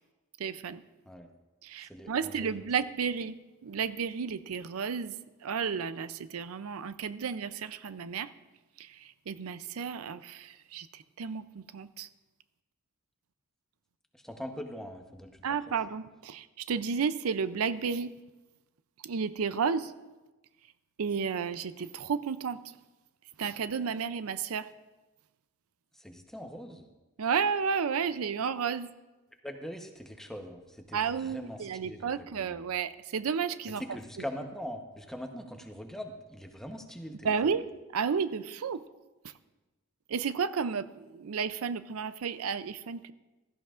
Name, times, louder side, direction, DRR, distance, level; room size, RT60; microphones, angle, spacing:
voice 1, 0.4-0.8 1.6-3.4 3.6-5.1 5.4-8.3 9.3-10.9 11.2-11.5 11.7-12.1 15.4-18.1 19.0-19.9 21.0-22.6 23.4-24.7 27.2-28.9 30.9-33.8 37.3-37.6 37.9-38.8 40.1-43.1, right 6 dB, 80° right, 13 dB, 0.5 m, -32 dB
voice 2, 1.9-2.6 14.1-15.8 25.9-26.9 29.4-32.6 33.7-37.6, equal, ahead, 4 dB, 1.0 m, -42 dB
16.0 x 14.0 x 2.5 m, 1.1 s
head